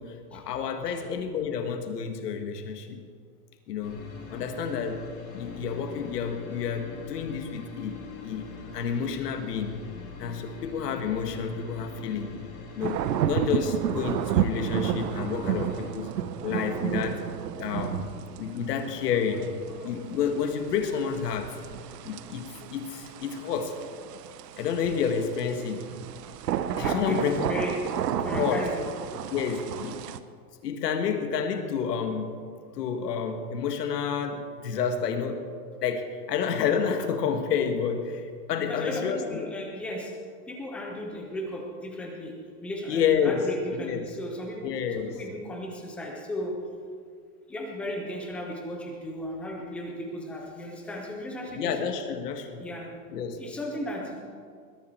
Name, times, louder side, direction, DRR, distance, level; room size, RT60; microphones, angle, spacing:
voice 1, 0.0-3.0 3.7-4.0 4.3-7.9 8.2-8.5 8.7-9.8 10.2-12.4 12.7-13.0 13.3-16.1 16.4-17.2 17.6-18.1 18.4-21.6 22.1-23.8 24.6-25.9 26.8-27.6 28.3-28.7 29.3-30.1 30.6-32.4 32.7-35.5 35.8-39.5 42.9-43.5 43.8-44.0 44.6-45.2 51.6-52.7 53.1-53.5, left 7 dB, 80° left, 6 dB, 1.7 m, -29 dB
sound 1, 3.8-15.9, left 3 dB, 65° left, 3.6 m, -43 dB
sound 2, 12.8-30.2, right 10 dB, 90° right, 1.0 m, -32 dB
voice 2, 26.8-27.7 28.2-28.9 38.6-40.1 40.5-42.3 42.6-46.6 47.5-51.7 52.6-52.9 53.3-54.2, equal, 5° left, 0 dB, 0.3 m, -35 dB
20.5 x 11.5 x 4.6 m, 2.1 s
supercardioid pair, 150°, 47 cm